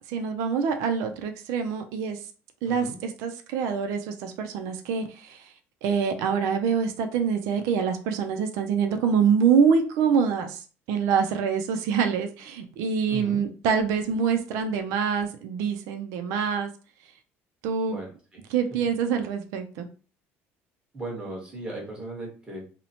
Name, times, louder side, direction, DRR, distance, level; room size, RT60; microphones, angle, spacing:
voice 1, 0.1-2.2 2.6-5.5 5.8-16.7 17.6-18.0 18.5-19.9, right 6 dB, 85° right, 0.4 m, -25 dB
voice 2, 2.7-3.0 13.1-13.4 17.9-18.4 20.9-22.7, right 2 dB, 20° right, 1.1 m, -37 dB
2.8 x 2.0 x 2.7 m
cardioid pair, 135°, 5 cm